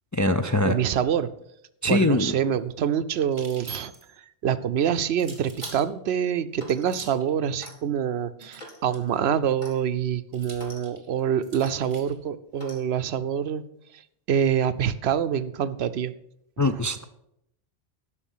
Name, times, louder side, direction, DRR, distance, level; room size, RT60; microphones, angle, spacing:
voice 1, 0.1-0.8 1.8-2.3 16.6-17.0, left 2 dB, 25° left, 7 dB, 0.4 m, -22 dB
voice 2, 0.6-1.3 1.9-3.9 4.4-13.6 14.3-16.1, right 8 dB, 75° right, 13 dB, 0.9 m, -26 dB
sound 1, 3.3-4.2 5.2-5.9 6.8-7.3 8.4-9.2 10.3-12.1, right 3 dB, 50° right, 2.2 m, -43 dB
Clock, 5.5-5.9 6.6-6.9 7.6-7.8 8.6-8.8 9.6-9.8 10.5-10.8 11.6-11.8 12.6-12.8, left 1 dB, 45° left, 2.3 m, -44 dB
11.0 x 6.5 x 7.3 m, 0.79 s
omnidirectional pair, 1.1 m